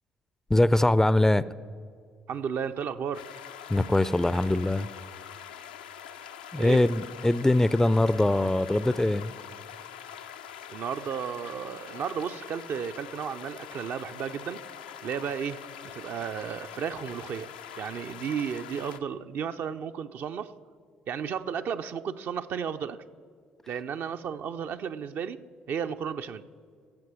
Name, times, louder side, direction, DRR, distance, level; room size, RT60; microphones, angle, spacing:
voice 1, 0.5-1.5 3.7-4.9 6.5-9.3, left 1 dB, 10° left, 17 dB, 0.4 m, -22 dB
voice 2, 2.3-3.3 6.6-6.8 10.7-14.6 15.0-15.6 15.9-17.5 17.8-20.5 21.1-23.0 23.7-25.4 25.7-26.5, right 7 dB, 50° right, 9 dB, 0.5 m, -33 dB
sound 1, 3.1-19.0, left 9 dB, 75° left, 0.4 m, -44 dB
16.5 x 7.7 x 4.8 m, 2.2 s
figure-of-eight pair, 45°, 5 cm